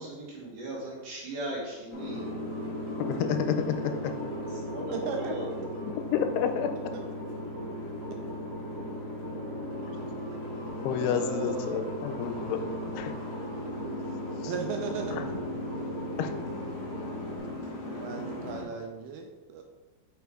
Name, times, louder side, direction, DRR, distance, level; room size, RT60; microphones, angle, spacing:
voice 1, 0.0-2.3 4.4-5.7, right 1 dB, 65° right, -4 dB, 2.6 m, -38 dB
Boat Water vehicle, 1.9-18.6, left 1 dB, 60° left, 1.6 m, -37 dB
sound 1, 2.0-17.4, equal, 30° right, 1.5 m, -42 dB
voice 2, 3.0-4.1 5.8-6.7 9.9-10.0 10.8-12.6 12.9-13.1 14.4-14.5 15.1-15.2 16.2-16.3, left 8 dB, 90° left, 7 dB, 2.7 m, -30 dB
voice 3, 4.9-5.3 10.9-11.8 12.5-12.8 14.5-15.2 17.9-19.6, right 5 dB, 80° right, 3 dB, 2.3 m, -36 dB
6.1 x 5.7 x 3.6 m, 1.3 s
omnidirectional pair, 4.7 m